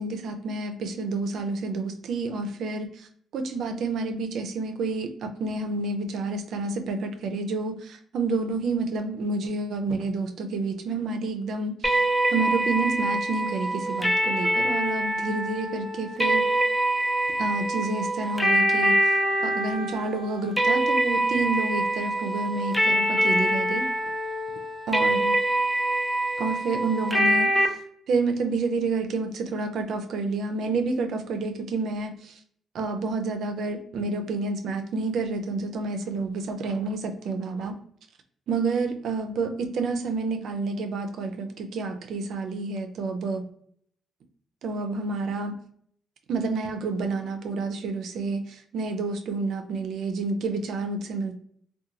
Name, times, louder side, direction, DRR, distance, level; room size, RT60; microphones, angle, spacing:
voice 1, 0.0-3.1 3.3-16.5 17.4-23.9 24.9-25.4 26.4-27.8 28.1-32.4 32.7-37.8 38.5-43.4 44.6-45.6 46.3-51.4, right 3 dB, 70° right, 6 dB, 0.4 m, -29 dB
sound 1, 11.8-27.7, right 1 dB, 10° left, 0.5 m, -25 dB
2.8 x 2.2 x 2.5 m, 0.63 s
cardioid pair, 90°, 0 cm